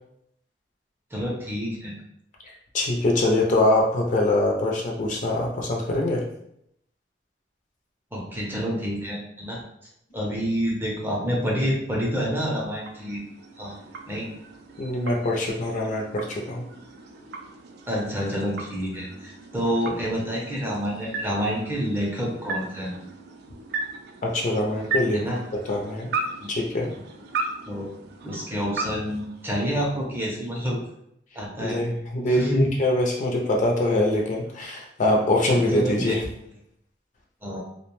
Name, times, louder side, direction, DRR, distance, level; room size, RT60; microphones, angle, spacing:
voice 1, 1.1-1.9 8.1-9.6 10.1-13.2 13.6-13.8 14.1-14.3 17.9-22.9 25.1-25.4 26.4-26.5 27.7-27.9 28.2-30.8 31.3-31.8 32.3-32.7 35.7-36.2 37.4-37.7, equal, 10° right, -3 dB, 0.6 m, -28 dB
voice 2, 2.7-6.2 14.8-16.6 24.2-25.2 25.7-26.1 26.5-26.9 31.6-36.2, left 1 dB, 45° left, 0 dB, 0.5 m, -23 dB
sound 1, 12.3-30.1, right 3 dB, 60° right, 0.3 m, -37 dB
2.4 x 2.1 x 3.0 m, 0.75 s
head